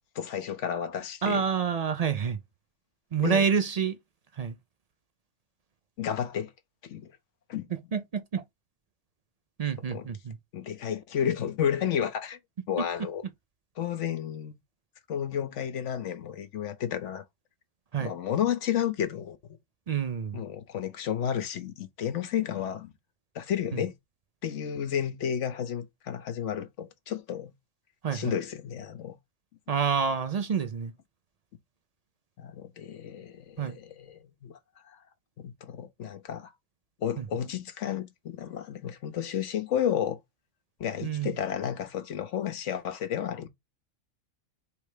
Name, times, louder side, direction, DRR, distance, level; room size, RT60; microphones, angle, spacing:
voice 1, 0.1-1.5 3.2-3.5 6.0-6.5 6.8-7.1 7.5-7.7 9.8-10.1 10.5-12.4 12.7-13.2 13.8-14.6 15.1-17.2 18.0-19.4 20.3-22.9 23.3-23.9 24.4-27.5 28.1-29.2 32.4-34.6 34.8-35.0 35.4-36.5 37.0-40.2 40.8-43.5, left 9 dB, 75° left, 1.0 m, -32 dB
voice 2, 1.2-2.4 3.1-4.0 4.4-4.6 7.9-8.4 9.6-10.4 12.8-12.9 17.9-18.1 19.9-20.4 23.7-23.8 28.0-28.3 29.7-30.9 33.6-33.8 37.2-37.3 41.0-41.3, right 7 dB, 55° right, 0.4 m, -28 dB
3.3 x 3.2 x 4.8 m
omnidirectional pair, 1.3 m